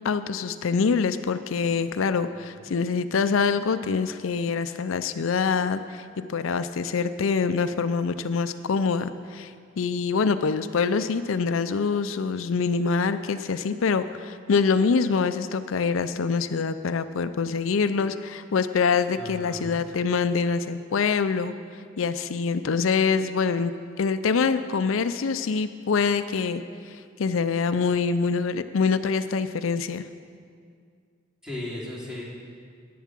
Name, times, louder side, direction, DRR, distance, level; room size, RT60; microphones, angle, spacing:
voice 1, 0.0-9.5 9.8-21.5 22.0-23.7 24.0-26.6 27.2-30.0, left 5 dB, 85° left, 11 dB, 0.5 m, -25 dB
voice 2, 2.1-2.7 19.1-19.8 31.4-32.2, left 1 dB, 5° right, -6 dB, 2.9 m, -37 dB
11.0 x 9.4 x 7.4 m, 2.1 s
head